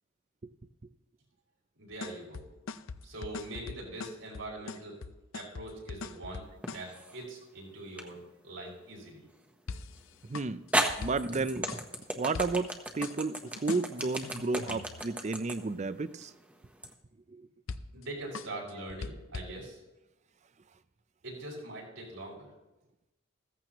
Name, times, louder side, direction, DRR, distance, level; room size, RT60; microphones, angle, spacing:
voice 1, 1.8-2.5 3.0-5.0 5.3-8.2 8.4-9.2 17.9-19.8 21.2-22.5, right 2 dB, 85° right, -3 dB, 5.5 m, -42 dB
sound 1, 1.9-6.9 9.7-11.4 11.7-12.0 12.3-12.7 13.0-15.0 17.7-18.1 18.3-19.5, left 4 dB, 80° left, 0.6 m, -42 dB
sound 2, 6.6-7.2 8.0-8.1 10.0-10.1 10.7-16.9, right 1 dB, 5° right, 1.0 m, -34 dB
voice 2, 10.3-10.6 11.0-11.7 12.2-12.7 12.9-16.3, right 3 dB, 35° right, 14 dB, 0.5 m, -32 dB
15.0 x 14.5 x 3.0 m, 0.96 s
head